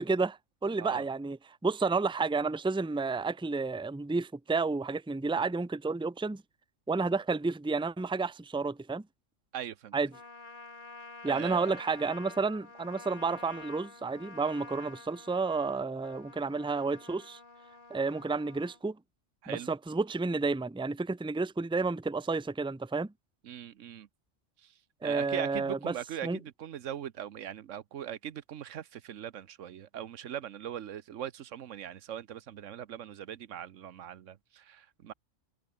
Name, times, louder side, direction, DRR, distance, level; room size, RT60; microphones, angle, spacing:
voice 1, 0.0-1.4 1.6-6.4 6.9-9.0 9.9-10.1 11.2-17.4 17.9-19.0 19.5-23.1 25.0-25.9 26.2-26.4, right 4 dB, 5° right, 0.6 m, -31 dB
voice 2, 9.5-10.0 11.3-11.8 19.4-19.7 23.4-24.1 24.6-24.7 25.0-35.1, right 10 dB, 85° right, 1.2 m, -40 dB
Trumpet, 10.1-18.8, left 3 dB, 40° left, 2.4 m, -49 dB
omnidirectional pair, 1.3 m